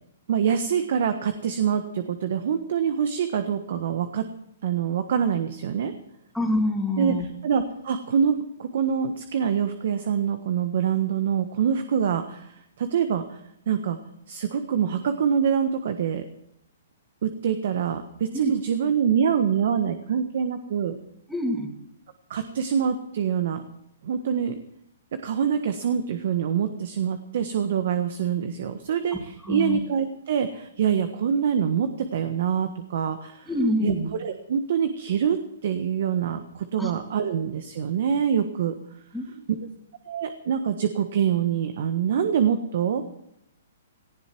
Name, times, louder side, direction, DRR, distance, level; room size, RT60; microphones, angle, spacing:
voice 1, 0.3-4.2 4.6-5.9 7.0-13.4 13.7-14.0 14.3-16.2 17.2-21.0 22.3-23.6 24.0-24.6 25.2-33.5 33.8-38.8 40.1-43.0, right 7 dB, 60° right, 9 dB, 1.4 m, -25 dB
voice 2, 6.3-7.2 18.3-18.5 21.3-21.7 29.4-29.8 33.5-34.1 36.8-36.9 39.1-39.3, left 1 dB, ahead, 1 dB, 2.8 m, -25 dB
18.5 x 15.0 x 4.6 m, 0.78 s
hypercardioid pair, 145°, 0 cm